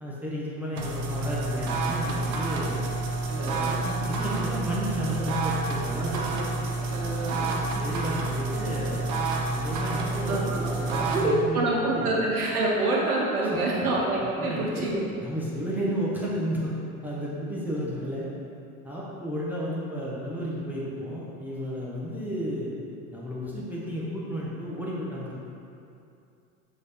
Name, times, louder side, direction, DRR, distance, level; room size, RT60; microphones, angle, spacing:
voice 1, 0.0-2.8 3.4-6.2 7.8-9.0 9.5-11.6 11.9-12.2 13.4-13.9 14.4-14.9 15.2-16.7 17.0-18.3 18.8-22.7 23.1-25.4, equal, 5° right, -7 dB, 1.1 m, -32 dB
sound 1, 0.8-11.3, right 3 dB, 60° right, 1.0 m, -29 dB
voice 2, 3.3-4.0 6.0-6.4 6.7-7.7 10.2-15.0, right 2 dB, 85° right, -3 dB, 0.9 m, -28 dB
6.4 x 3.5 x 4.3 m, 2.6 s
hypercardioid pair, 85°, 43 cm